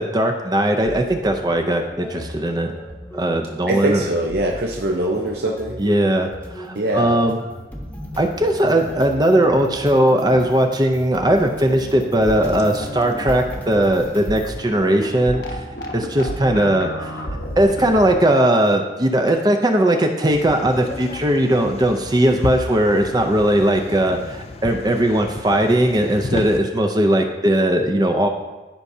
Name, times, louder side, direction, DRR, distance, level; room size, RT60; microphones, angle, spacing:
voice 1, 0.0-2.7 3.1-4.0 5.8-7.4 8.2-15.6 15.9-17.2 17.6-28.3, right 1 dB, 20° right, 4 dB, 0.5 m, -18 dB
sound 1, 0.8-14.6, equal, 10° left, 0.9 m, -38 dB
voice 2, 3.7-5.8 6.7-7.2, right 1 dB, 60° right, 0 dB, 0.7 m, -22 dB
sound 2, 12.2-18.2, equal, 65° left, 1.1 m, -31 dB
sound 3, 20.3-26.6, left 2 dB, 35° left, 0.4 m, -32 dB
14.5 x 5.5 x 2.7 m, 1.1 s
head